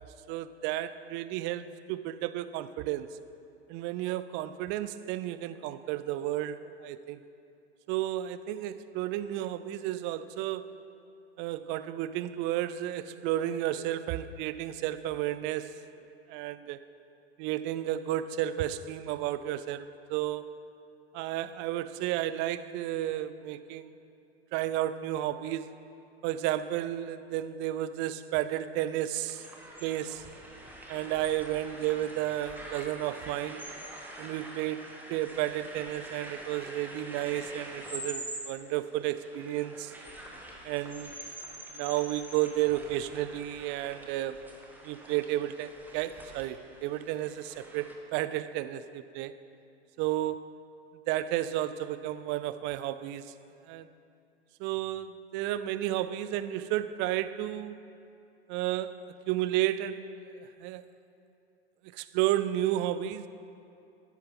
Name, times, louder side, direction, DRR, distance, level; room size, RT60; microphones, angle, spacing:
voice 1, 0.3-3.1 3.7-7.2 7.9-10.7 11.4-15.8 16.3-16.8 17.4-20.4 21.1-23.9 24.5-25.7 26.2-29.4 29.8-30.2 30.9-33.7 34.2-39.9 40.6-41.1 41.7-44.5 44.8-49.3 50.0-50.5 51.1-53.3 53.7-53.9 54.6-57.8 58.5-60.8 61.9-63.3, right 13 dB, 35° right, 14 dB, 0.4 m, -32 dB
sound 1, 29.1-47.9, right 1 dB, 5° right, 1.5 m, -45 dB
12.5 x 9.9 x 3.8 m, 2.6 s
hypercardioid pair, 95°, 32 cm